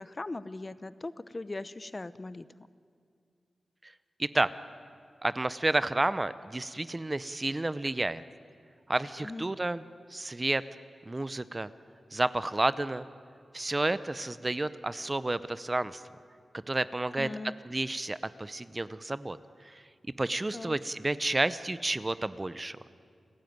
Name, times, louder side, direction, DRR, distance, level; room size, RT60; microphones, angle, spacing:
voice 1, 0.0-2.5 9.2-9.4 17.1-17.5 20.5-20.7, left 2 dB, 30° left, 15 dB, 0.7 m, -39 dB
voice 2, 5.2-8.2 8.9-9.8 10.1-10.6 11.1-11.7 12.1-13.1 13.5-16.0 16.7-17.3 17.7-19.4 19.6-19.8 20.2-22.8, right 2 dB, 25° right, 15 dB, 0.7 m, -30 dB
29.0 x 15.5 x 9.4 m, 2.3 s
wide cardioid pair, 110°, 0 cm